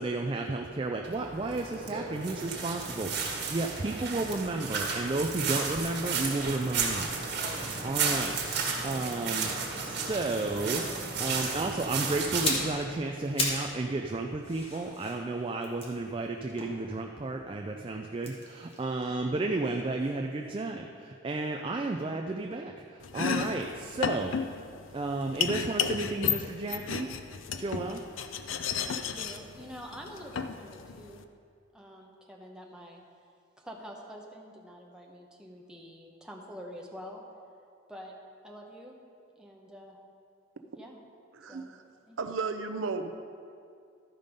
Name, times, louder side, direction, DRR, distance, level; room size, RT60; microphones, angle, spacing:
voice 1, 0.0-8.5 8.8-24.3 24.9-27.1 27.5-28.0, right 2 dB, 25° right, 3 dB, 0.4 m, -33 dB
sound 1, 1.0-12.7, right 4 dB, 55° right, 1.6 m, -33 dB
sound 2, 12.2-13.8 14.1-17.3 18.1-20.2 20.4-20.6, left 2 dB, 30° left, 1.4 m, -36 dB
Domestic sounds home sounds, 23.0-31.2, left 7 dB, 75° left, 0.5 m, -33 dB
voice 2, 28.9-31.3 31.7-33.0 33.6-37.2 37.9-38.1 38.4-38.9 39.4-40.0 40.8-41.0 41.5-41.7 42.1-42.2, equal, 5° right, -1 dB, 0.9 m, -46 dB
voice 3, 41.3-41.8 42.2-43.1, right 4 dB, 75° right, 8 dB, 0.5 m, -34 dB
12.5 x 5.3 x 5.2 m, 2.3 s
head